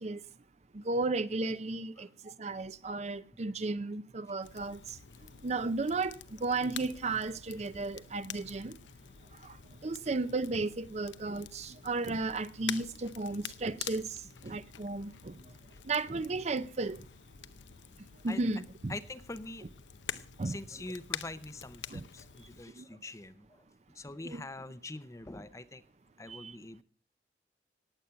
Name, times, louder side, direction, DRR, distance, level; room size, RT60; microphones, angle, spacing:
voice 1, 0.7-4.8 5.4-8.8 9.4-9.6 9.8-14.2 14.4-15.3 15.9-17.0 18.2-18.9 20.4-20.6 21.9-22.0 22.8-22.9 24.2-24.4 26.3-26.5, right 3 dB, 35° right, 0.6 m, -34 dB
Crackle, 4.4-22.6, left 9 dB, 85° left, 0.7 m, -47 dB
voice 2, 18.9-19.6 20.4-23.6 23.9-25.8 26.2-26.8, left 2 dB, 15° left, 0.6 m, -44 dB
18.0 x 8.2 x 5.7 m
head